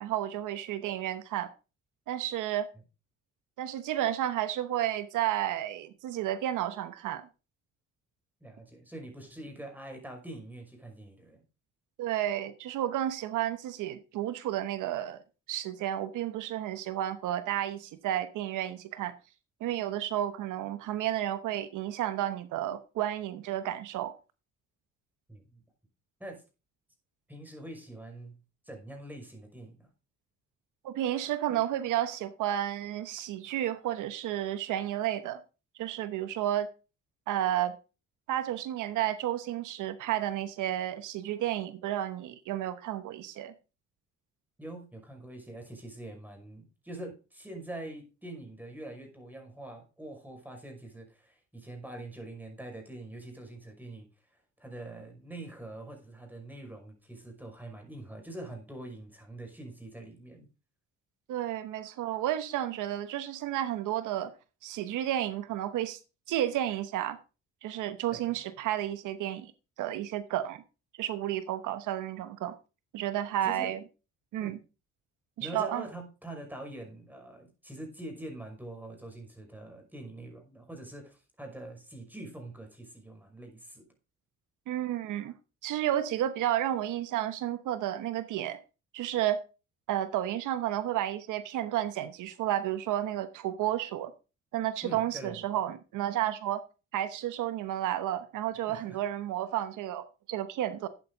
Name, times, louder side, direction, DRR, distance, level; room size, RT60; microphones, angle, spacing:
voice 1, 0.0-1.5 2.1-2.7 3.6-7.3 12.0-15.2 15.5-19.1 19.6-24.1 30.8-35.4 35.8-36.7 37.3-37.8 38.3-43.5 61.3-64.3 64.6-66.0 66.3-67.2 67.6-69.5 69.8-70.6 71.0-72.6 72.9-73.8 74.3-74.6 75.4-75.8 84.7-85.3 85.6-88.6 88.9-89.4 89.9-94.1 94.5-96.6 96.9-100.9, right 12 dB, 85° right, 1.0 m, -32 dB
voice 2, 8.4-11.4 25.3-25.6 26.2-26.4 27.3-28.4 28.6-29.9 44.6-54.1 54.3-60.5 68.1-68.4 73.4-73.8 74.4-74.6 75.4-83.9 94.8-95.5 98.7-99.0, right 1 dB, 5° right, 5.8 m, -44 dB
13.0 x 8.7 x 3.9 m
cardioid pair, 90°, 30 cm